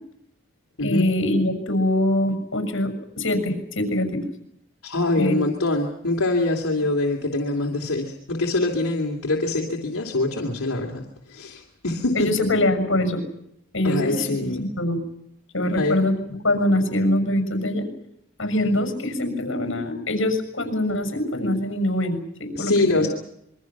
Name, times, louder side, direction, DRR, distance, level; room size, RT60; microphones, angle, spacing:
voice 1, 0.8-4.2 5.2-5.4 12.1-13.2 13.7-15.0 15.5-16.2 16.4-17.9 18.4-23.1, left 1 dB, 60° left, 6 dB, 6.4 m, -23 dB
voice 2, 4.8-11.0 11.3-12.3 13.8-14.6 15.7-16.0 22.5-23.1, left 2 dB, 80° left, -1 dB, 3.0 m, -24 dB
27.0 x 23.0 x 6.1 m, 0.78 s
head